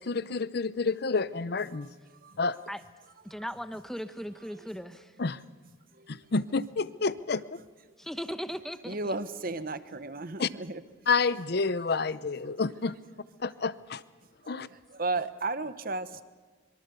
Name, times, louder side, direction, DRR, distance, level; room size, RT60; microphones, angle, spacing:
voice 1, 0.0-1.9 2.4-2.6 5.2-5.4 6.1-7.6 10.4-10.5 11.1-13.0 13.4-14.0 14.5-14.7, left 4 dB, 55° left, 0.7 m, -29 dB
voice 2, 3.2-5.1 8.0-9.1, equal, ahead, 0.9 m, -38 dB
voice 3, 5.9-6.3 8.9-10.8 14.6-16.2, right 3 dB, 50° right, 1.0 m, -34 dB
25.0 x 23.0 x 6.9 m
head